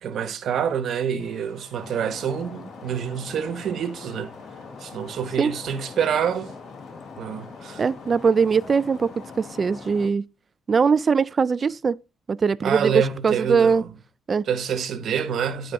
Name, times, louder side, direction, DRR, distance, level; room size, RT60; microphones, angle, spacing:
voice 1, 0.0-4.3 4.8-6.5 7.2-7.8 12.6-13.9 14.4-15.7, right 7 dB, 65° right, 1.1 m, -27 dB
sound 1, 1.2-9.8, left 4 dB, 70° left, 2.8 m, -51 dB
Stream, 1.8-10.1, left 4 dB, 45° left, 1.2 m, -42 dB
voice 2, 7.8-10.2 10.7-12.0 12.3-12.9 13.2-13.8 14.3-14.4, right 5 dB, 40° right, 0.3 m, -21 dB
11.0 x 4.9 x 3.7 m
cardioid pair, 90°, 0 cm